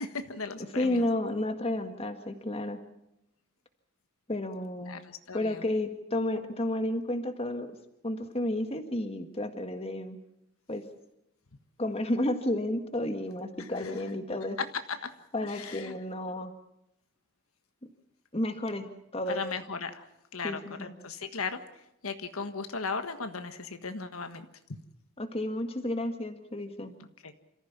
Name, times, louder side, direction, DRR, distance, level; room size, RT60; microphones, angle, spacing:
voice 1, 0.0-1.0 4.9-5.6 14.9-15.0 15.4-15.9 19.3-20.0 20.3-21.6 22.0-24.5 27.2-27.3, left 4 dB, 85° left, 8 dB, 1.5 m, -37 dB
voice 2, 0.7-2.8 4.3-5.0 5.3-7.7 8.0-10.2 10.7-10.8 11.8-14.6 15.3-16.5 18.3-18.9 19.1-19.4 20.4-20.9 25.2-26.9, left 1 dB, 30° left, 7 dB, 1.8 m, -31 dB
27.5 x 15.0 x 7.3 m, 0.84 s
head